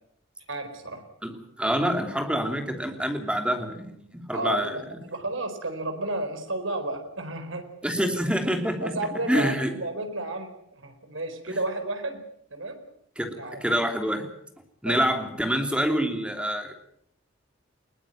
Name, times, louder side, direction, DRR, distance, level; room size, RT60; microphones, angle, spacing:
voice 1, 0.5-1.0 4.3-7.6 8.8-12.2 12.5-12.8 13.4-13.6 14.8-15.0, right 2 dB, 80° right, 6 dB, 4.4 m, -32 dB
voice 2, 1.2-4.8 7.8-8.9 9.3-9.7 11.5-11.6 13.2-13.4 13.6-14.3 14.8-16.7, equal, 5° right, 5 dB, 3.1 m, -26 dB
21.0 x 19.0 x 9.0 m, 0.71 s
head